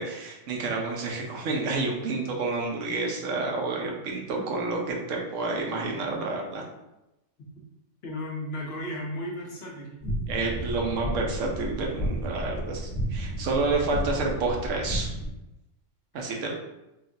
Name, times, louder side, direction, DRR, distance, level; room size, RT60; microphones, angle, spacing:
voice 1, 0.0-6.6 10.3-15.1 16.1-16.5, right 3 dB, 90° right, 0 dB, 1.0 m, -29 dB
voice 2, 8.0-10.0 16.1-16.5, left 1 dB, 60° left, -1 dB, 0.8 m, -35 dB
sound 1, 10.0-15.3, right 1 dB, 35° left, 1.0 m, -32 dB
3.5 x 2.3 x 2.6 m, 0.95 s
omnidirectional pair, 1.3 m